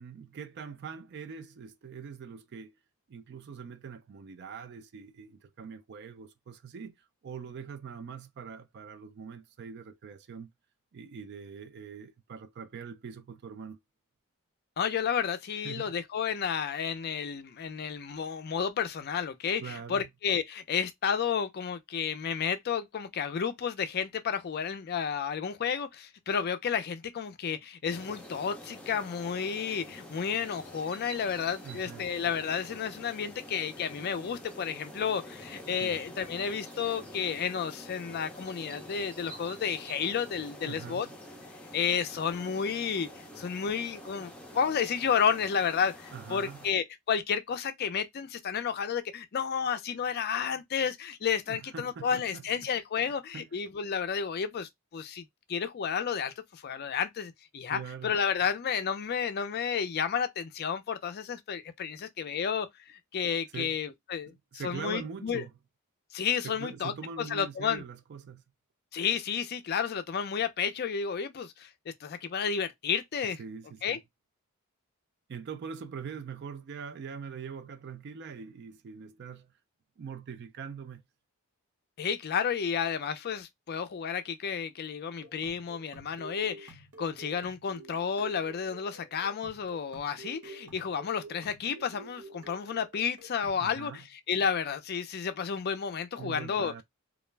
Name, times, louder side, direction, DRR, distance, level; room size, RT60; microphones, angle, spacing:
voice 1, 0.0-2.8 3.1-10.5 10.9-13.8 15.6-15.9 19.6-20.1 31.6-32.1 35.8-36.0 40.6-41.1 46.1-46.7 51.5-52.7 53.3-53.5 57.7-58.2 63.5-63.8 64.3-65.5 66.4-68.4 73.4-74.0 75.3-79.5 80.0-81.0 93.6-94.0 96.2-96.8, right 6 dB, 50° right, 0.4 m, -43 dB
voice 2, 14.8-41.1 41.7-43.1 43.4-65.4 66.1-66.9 67.2-67.8 68.9-71.7 72.0-73.4 73.8-74.0 82.0-96.7, left 7 dB, 45° left, 0.4 m, -31 dB
sound 1, 27.9-46.7, equal, 5° left, 0.6 m, -47 dB
sound 2, 85.2-93.7, right 3 dB, 75° right, 0.8 m, -50 dB
2.3 x 2.0 x 3.2 m
head